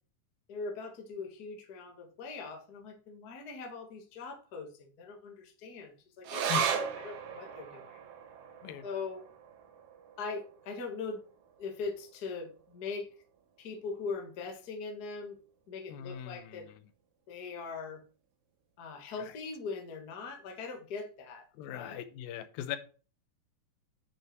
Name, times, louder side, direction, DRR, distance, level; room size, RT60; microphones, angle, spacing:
voice 1, 0.5-8.0 8.8-9.2 10.2-11.2 11.6-13.1 13.6-15.4 15.7-16.7 17.3-18.0 18.8-22.0, left 4 dB, 45° left, 3 dB, 1.2 m, -41 dB
sound 1, 6.2-13.0 13.3-13.4 13.8-14.4 15.0-15.1, right 7 dB, 65° right, 2.2 m, -38 dB
voice 2, 15.9-16.7 19.2-19.3 21.5-22.8, left 10 dB, 85° left, 12 dB, 2.6 m, -40 dB
8.6 x 5.5 x 4.6 m, 0.37 s
omnidirectional pair, 4.1 m